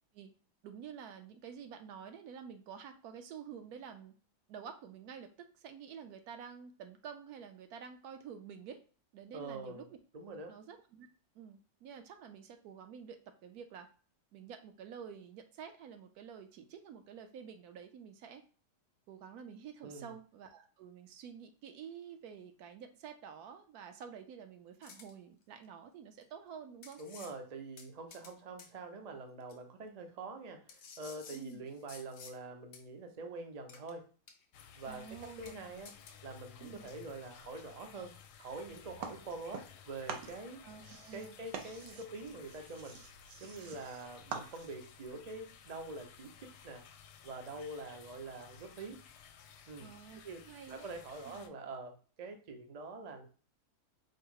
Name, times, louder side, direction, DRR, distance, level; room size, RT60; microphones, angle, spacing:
voice 1, 0.6-4.1 4.5-8.8 9.1-10.0 10.5-11.1 11.3-13.2 13.4-13.9 14.3-18.4 19.1-27.0 31.3-31.6 34.9-35.6 36.6-36.8 40.6-41.4 49.8-50.9, right 7 dB, 70° right, 7 dB, 1.1 m, -49 dB
voice 2, 9.3-9.9 10.1-10.6 19.8-20.1 27.0-34.1 34.8-35.0 35.4-35.9 36.2-40.6 41.1-43.0 43.4-46.4 46.6-46.8 47.2-49.0 49.7-49.9 50.2-53.3, right 3 dB, 50° right, 4 dB, 0.4 m, -45 dB
sound 1, 24.8-25.1 26.2-26.3 26.8-27.3 27.8-28.3 28.6-28.7 29.5-29.6 30.7-32.4 32.7-32.8 33.7-33.9 34.3-34.7 34.9-35.0 35.4-35.5 35.8-36.2, left 5 dB, 60° left, 0.7 m, -53 dB
sound 2, 34.5-51.5, left 7 dB, 80° left, 1.1 m, -56 dB
sound 3, 39.0-39.8 40.1-44.9, right 6 dB, 90° right, 1.3 m, -46 dB
4.6 x 2.0 x 4.7 m, 0.38 s
omnidirectional pair, 1.8 m